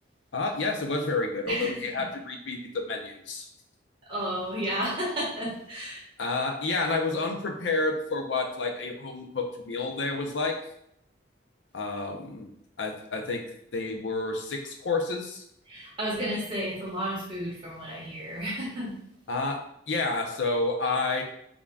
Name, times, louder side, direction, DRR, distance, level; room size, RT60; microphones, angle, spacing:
voice 1, 0.3-3.4 6.2-10.6 11.7-12.5 12.8-13.4 13.7-15.4 19.3-21.2, left 3 dB, 85° left, 2 dB, 0.6 m, -29 dB
voice 2, 4.1-6.0 15.7-18.9, equal, 30° right, -6 dB, 1.5 m, -32 dB
3.8 x 3.5 x 2.3 m, 0.73 s
head